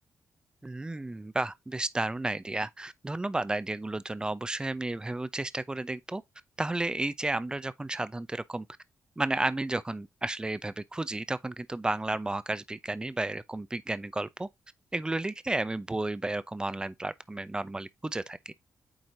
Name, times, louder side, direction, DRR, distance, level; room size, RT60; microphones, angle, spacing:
voice 1, 0.6-6.2 6.6-8.7 9.2-14.5 14.9-18.5, right 2 dB, 15° right, 0.7 m, -32 dB
8.8 x 3.2 x 3.8 m
cardioid pair, 80°, 5 cm